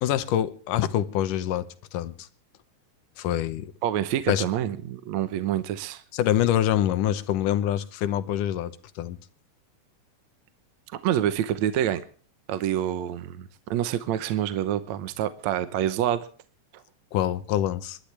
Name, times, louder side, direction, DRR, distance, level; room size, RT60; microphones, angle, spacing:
voice 1, 0.0-2.3 3.2-3.7 4.3-4.5 6.1-9.2 17.1-18.0, left 11 dB, 80° left, 2.5 m, -25 dB
voice 2, 3.8-6.0 10.9-12.0 12.5-16.3 16.7-16.8, right 11 dB, 70° right, 2.0 m, -27 dB
28.5 x 12.0 x 3.3 m
omnidirectional pair, 3.7 m